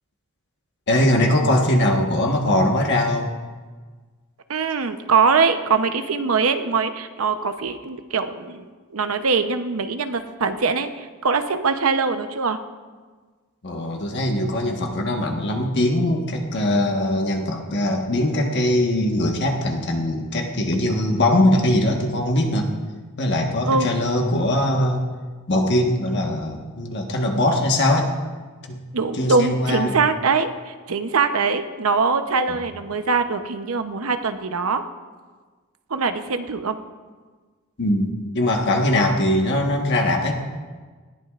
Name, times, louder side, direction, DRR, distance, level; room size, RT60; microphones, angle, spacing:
voice 1, 0.9-3.3 13.6-22.7 23.2-25.1 25.5-28.1 28.7-28.8 29.1-30.0 32.5-32.7 37.8-40.4, left 1 dB, 55° left, 1 dB, 1.4 m, -21 dB
voice 2, 4.5-8.7 8.9-12.6 23.6-23.9 28.9-34.8 35.9-36.8, right 4 dB, 85° right, 8 dB, 0.8 m, -22 dB
19.5 x 14.5 x 2.5 m, 1.4 s
head